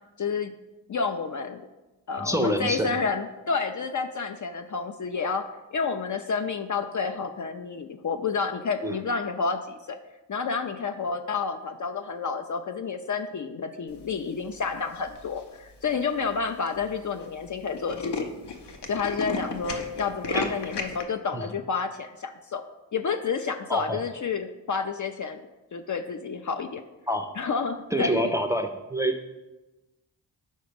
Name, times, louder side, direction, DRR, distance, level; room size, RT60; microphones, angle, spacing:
voice 1, 0.2-0.5 0.9-1.7 2.1-10.0 10.3-18.3 18.9-22.6 22.9-25.4 25.7-26.8 27.4-28.2, left 5 dB, 45° left, 7 dB, 0.4 m, -30 dB
voice 2, 2.1-2.9 8.8-9.0 20.3-20.5 21.3-21.4 23.7-24.0 27.1-27.3 27.9-29.2, equal, 5° right, 6 dB, 0.5 m, -27 dB
Tools, 15.0-15.4 16.0-16.1 16.3-16.4 16.7-16.9 17.2-17.3 17.5-21.0, left 3 dB, 65° left, 0.8 m, -33 dB
5.3 x 3.8 x 5.1 m, 1.1 s
cardioid pair, 50°, 44 cm